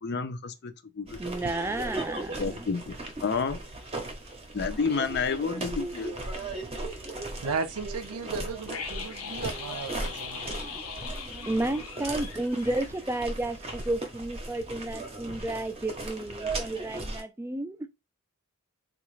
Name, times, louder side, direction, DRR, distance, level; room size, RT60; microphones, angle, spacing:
voice 1, 0.0-1.2 2.4-3.6 4.5-6.1, left 5 dB, 50° left, 0.5 m, -30 dB
sound 1, 1.1-17.2, right 2 dB, 25° right, 0.7 m, -37 dB
voice 2, 1.2-2.6 11.5-17.9, right 2 dB, 10° right, 0.3 m, -32 dB
voice 3, 7.4-10.5, right 4 dB, 90° right, 0.6 m, -35 dB
sound 2, 8.7-13.5 13.8-13.9, left 6 dB, 90° left, 0.7 m, -40 dB
3.6 x 2.4 x 3.1 m
head